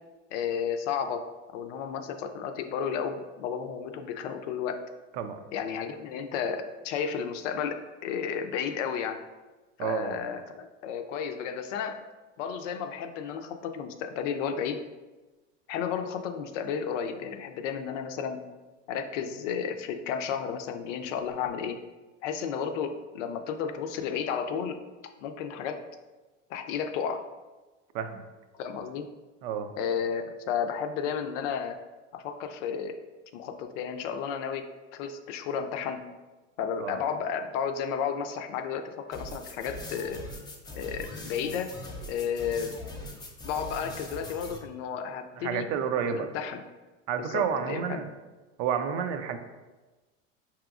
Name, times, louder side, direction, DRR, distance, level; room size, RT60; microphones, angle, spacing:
voice 1, 0.3-4.8 5.5-9.2 9.8-12.0 12.4-14.8 15.7-18.4 18.9-21.8 22.2-24.8 25.2-25.8 26.5-27.2 28.6-29.1 29.8-31.8 32.1-33.0 33.3-34.7 34.9-36.0 36.6-40.2 40.7-41.7 42.1-42.8 43.4-45.6 46.0-46.6 47.2-48.0, left 7 dB, 70° left, 7 dB, 0.5 m, -32 dB
voice 2, 9.8-10.2 27.9-28.2 29.4-29.7 36.8-37.0 45.4-46.3 47.1-48.1 48.6-49.4, right 7 dB, 60° right, 8 dB, 0.5 m, -30 dB
sound 1, 39.1-44.6, left 1 dB, 10° left, 0.4 m, -41 dB
4.8 x 2.9 x 2.4 m, 1.2 s
supercardioid pair, 110°, 38 cm